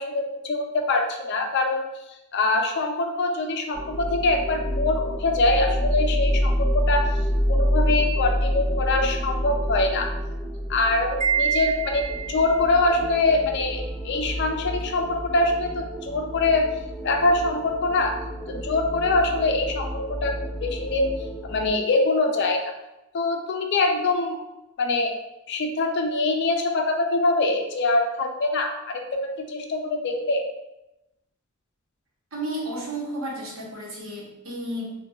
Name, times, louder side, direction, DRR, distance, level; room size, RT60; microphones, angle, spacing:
voice 1, 0.0-1.9 2.3-7.1 7.5-10.1 10.7-16.7 17.0-18.1 18.5-21.1 21.4-22.7 23.1-24.4 24.8-25.1 25.5-30.4, left 2 dB, 55° left, 3 dB, 0.4 m, -24 dB
sound 1, 3.7-21.7, equal, 5° right, 1.0 m, -28 dB
Wind chime, 11.2-12.6, right 8 dB, 30° right, 0.3 m, -26 dB
voice 2, 32.3-35.1, right 1 dB, 85° right, -3 dB, 0.9 m, -32 dB
4.1 x 2.2 x 2.3 m, 0.94 s
head